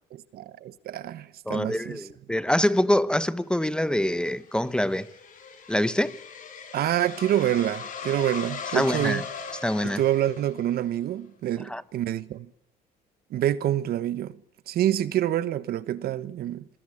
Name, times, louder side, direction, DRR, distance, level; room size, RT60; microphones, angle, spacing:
voice 1, 0.3-2.1 6.7-9.2 9.8-12.5 13.3-14.4 14.7-16.7, right 12 dB, 65° right, 1.2 m, -27 dB
voice 2, 1.5-5.1 5.7-6.2 8.7-9.2 9.6-10.0 11.6-11.8, left 1 dB, 5° left, 1.0 m, -25 dB
sound 1, 3.8-10.9, left 6 dB, 55° left, 6.8 m, -39 dB
26.5 x 21.5 x 9.9 m
cardioid pair, 110°, 17 cm